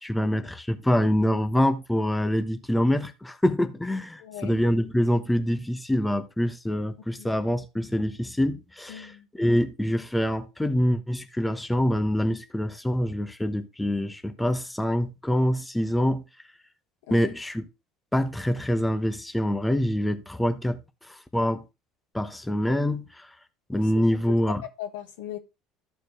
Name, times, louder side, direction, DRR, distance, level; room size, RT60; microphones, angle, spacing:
voice 1, 0.0-16.2 17.1-17.7 18.1-20.8 21.1-21.6 22.1-23.3 23.7-24.6, equal, 10° left, 1.0 m, -25 dB
voice 2, 4.2-4.6 7.2-7.3 8.9-9.3 17.1-17.3 23.9-24.0 24.8-25.4, left 10 dB, 75° left, 1.3 m, -38 dB
13.5 x 4.5 x 3.1 m
hypercardioid pair, 65°, 0 cm